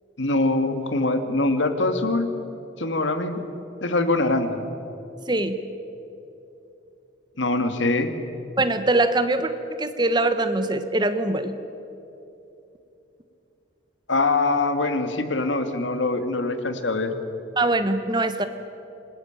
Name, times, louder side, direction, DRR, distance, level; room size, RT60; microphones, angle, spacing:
voice 1, 0.2-2.3 2.8-3.4 3.8-4.6 7.4-8.1 14.1-17.1, left 2 dB, 85° left, 8 dB, 2.2 m, -23 dB
voice 2, 5.3-5.6 8.6-9.5 9.8-11.5 17.6-18.4, right 2 dB, 25° right, 10 dB, 1.2 m, -22 dB
27.0 x 20.5 x 9.0 m, 2.9 s
head